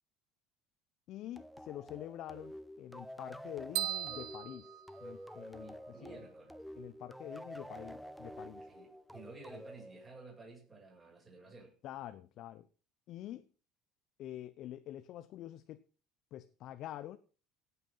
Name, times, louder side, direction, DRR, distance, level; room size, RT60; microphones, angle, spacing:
voice 1, 1.1-5.7 6.0-6.2 6.8-8.7 11.8-12.7 13.1-13.5 14.2-15.8 16.3-17.2, left 13 dB, 55° left, 0.9 m, -46 dB
sound 1, 1.4-10.6, equal, ahead, 0.7 m, -49 dB
sound 2, 3.8-5.7, right 13 dB, 75° right, 0.8 m, -39 dB
voice 2, 5.6-6.6 8.6-11.7, right 3 dB, 20° right, 7.9 m, -53 dB
17.0 x 8.3 x 5.8 m
cardioid pair, 120°, 0 cm